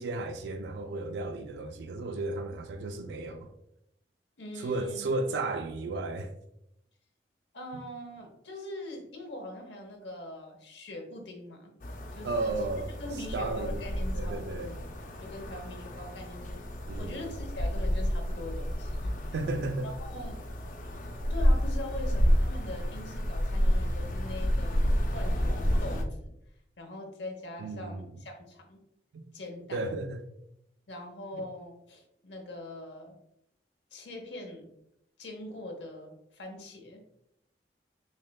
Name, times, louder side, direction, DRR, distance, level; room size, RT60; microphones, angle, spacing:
voice 1, 0.0-3.5 4.6-6.3 12.2-13.0 13.3-13.8 14.1-14.7 16.9-17.3 19.3-19.9 27.6-28.1 29.1-29.2 29.7-30.2 31.3-31.4, right 2 dB, 80° right, 0.3 m, -34 dB
voice 2, 4.4-5.1 7.5-11.7 12.1-14.9 15.2-16.6 16.9-19.3 19.8-20.4 21.3-26.3 26.8-28.8 29.3-30.0 30.9-33.2 33.9-34.7 35.2-37.0, left 1 dB, 90° left, 0.8 m, -42 dB
sound 1, 11.8-26.0, equal, 50° left, 0.4 m, -30 dB
6.1 x 2.2 x 2.2 m
head